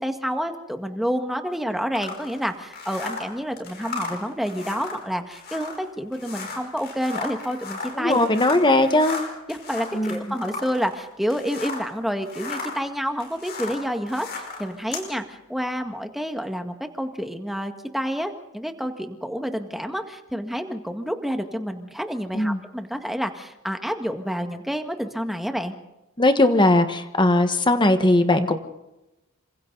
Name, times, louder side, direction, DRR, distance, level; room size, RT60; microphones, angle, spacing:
voice 1, 0.0-8.2 9.5-25.7, equal, ahead, 6 dB, 1.8 m, -29 dB
sound 1, 1.9-11.9 12.2-15.1, left 4 dB, 50° left, 5.3 m, -35 dB
voice 2, 8.0-9.2 9.9-10.2 22.3-22.6 26.2-28.6, left 1 dB, 20° left, 8 dB, 1.5 m, -19 dB
28.5 x 26.0 x 4.1 m, 0.95 s
head